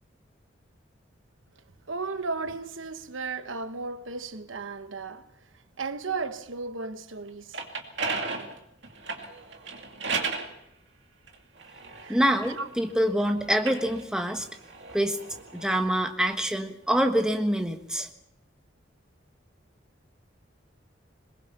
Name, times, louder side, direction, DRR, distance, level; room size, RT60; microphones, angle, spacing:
voice 1, 1.9-5.3 5.8-7.6 11.9-12.2 12.5-12.7, right 4 dB, 90° right, 1.1 m, -34 dB
sound 1, 7.3-10.5 11.3-13.0 13.5-15.8, right 4 dB, 65° right, 2.5 m, -35 dB
voice 2, 12.1-14.5 14.9-15.2 15.5-18.1, equal, 5° right, 1.4 m, -25 dB
22.0 x 21.0 x 5.9 m
head